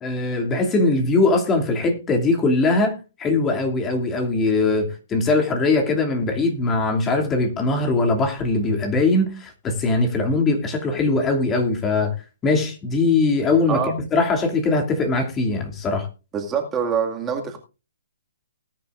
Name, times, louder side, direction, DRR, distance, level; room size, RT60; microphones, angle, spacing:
voice 1, 0.0-12.1 12.4-16.1, left 3 dB, 20° left, 2.6 m, -21 dB
voice 2, 16.3-17.6, right 7 dB, 20° right, 2.1 m, -24 dB
19.5 x 10.5 x 2.5 m
figure-of-eight pair, 125°, 0 cm